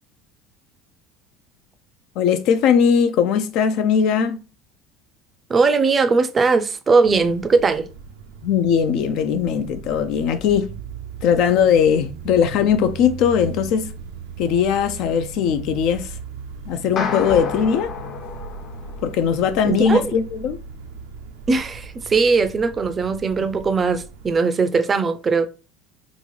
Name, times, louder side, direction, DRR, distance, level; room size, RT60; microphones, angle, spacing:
voice 1, 2.2-4.4 8.4-10.7 11.2-13.9 14.4-16.1 16.7-17.9 19.0-20.6, left 7 dB, 65° left, 0.4 m, -19 dB
voice 2, 5.5-7.9 19.6-20.1 21.5-25.5, right 4 dB, 25° right, 0.4 m, -19 dB
sound 1, 7.0-24.4, right 5 dB, 85° right, 0.5 m, -38 dB
sound 2, 17.0-19.4, left 5 dB, 45° left, 0.8 m, -29 dB
3.7 x 2.4 x 3.2 m
supercardioid pair, 110°, 0 cm